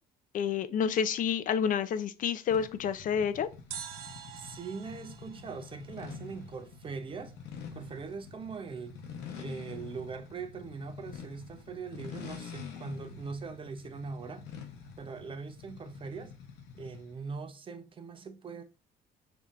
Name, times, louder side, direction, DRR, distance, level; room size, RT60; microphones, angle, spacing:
voice 1, 0.3-3.5, left 7 dB, 50° left, 0.4 m, -29 dB
sound 1, 2.5-17.2, left 6 dB, 85° left, 0.8 m, -47 dB
sound 2, 3.7-6.8 7.0-7.1, right 9 dB, 90° right, 0.6 m, -47 dB
voice 2, 4.3-7.3 7.7-9.0 9.4-14.5 15.0-16.3 16.7-18.6, right 5 dB, 30° right, 0.6 m, -41 dB
5.5 x 2.8 x 2.4 m
cardioid pair, 110°, 17 cm